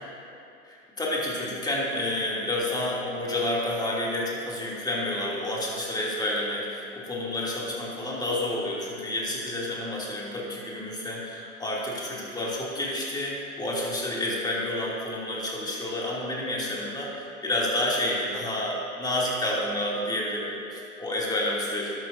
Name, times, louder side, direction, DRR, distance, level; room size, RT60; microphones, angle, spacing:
voice 1, 0.6-22.0, left 1 dB, 10° left, -5 dB, 2.7 m, -29 dB
12.0 x 11.5 x 2.7 m, 2.7 s
hypercardioid pair, 90°, 39 cm